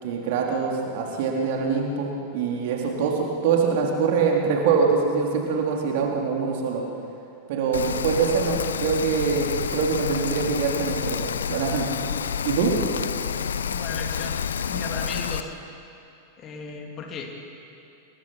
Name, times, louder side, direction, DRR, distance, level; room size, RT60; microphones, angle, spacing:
voice 1, 0.0-6.8 7.5-11.2 11.5-11.9 12.4-12.8, right 5 dB, 50° right, 0 dB, 3.8 m, -24 dB
Rain, 7.7-15.4, left 7 dB, 65° left, 0.7 m, -29 dB
voice 2, 13.7-14.4 14.7-15.5 16.4-17.3, left 4 dB, 30° left, 2 dB, 3.0 m, -35 dB
28.0 x 21.5 x 5.9 m, 2.7 s
figure-of-eight pair, 90°, 0 cm